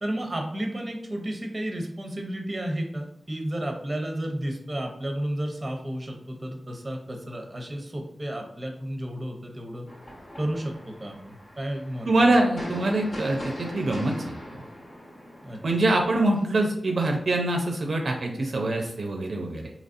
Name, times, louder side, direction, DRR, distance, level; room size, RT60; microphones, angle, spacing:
voice 1, 0.0-9.9 10.4-12.2 15.4-15.6, right 1 dB, 25° right, 2 dB, 0.7 m, -32 dB
sound 1, 9.9-16.3, equal, 50° left, 1.3 m, -41 dB
voice 2, 12.1-14.3 15.6-19.7, right 2 dB, 65° right, 2 dB, 0.5 m, -24 dB
4.0 x 2.9 x 2.5 m, 0.79 s
wide cardioid pair, 105°, 0 cm